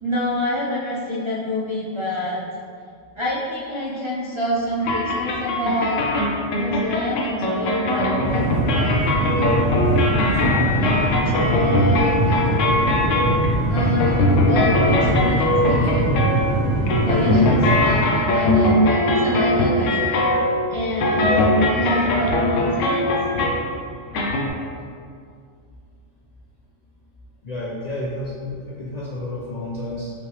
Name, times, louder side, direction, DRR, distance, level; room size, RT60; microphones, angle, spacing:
voice 1, 0.0-2.4 3.2-6.0 6.5-8.4 8.7-9.4 10.1-12.4 13.7-16.1 17.0-20.3 20.7-21.4 21.7-23.0, left 1 dB, 45° right, -6 dB, 0.3 m, -27 dB
sound 1, 4.8-23.7 24.1-24.5, left 1 dB, 75° left, 1.0 m, -21 dB
sound 2, 8.2-18.0, right 1 dB, 15° right, 1.1 m, -22 dB
voice 2, 21.2-21.6 27.4-30.1, left 1 dB, 55° left, -5 dB, 0.4 m, -30 dB
5.1 x 3.3 x 3.1 m, 2.2 s
omnidirectional pair, 1.3 m